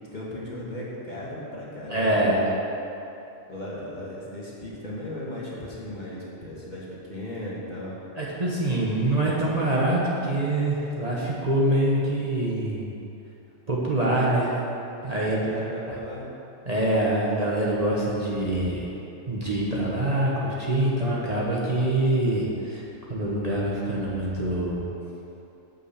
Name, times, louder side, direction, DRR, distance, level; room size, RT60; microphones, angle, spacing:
voice 1, 0.1-2.3 3.5-8.0 15.3-16.3, left 1 dB, 35° left, -6 dB, 1.6 m, -36 dB
voice 2, 1.9-2.4 8.2-12.9 13.7-14.5 15.0-16.0 16.7-18.9 19.3-22.8 23.1-24.8, right 1 dB, 30° right, -6 dB, 1.2 m, -25 dB
8.3 x 5.4 x 6.7 m, 2.9 s
omnidirectional pair, 1.3 m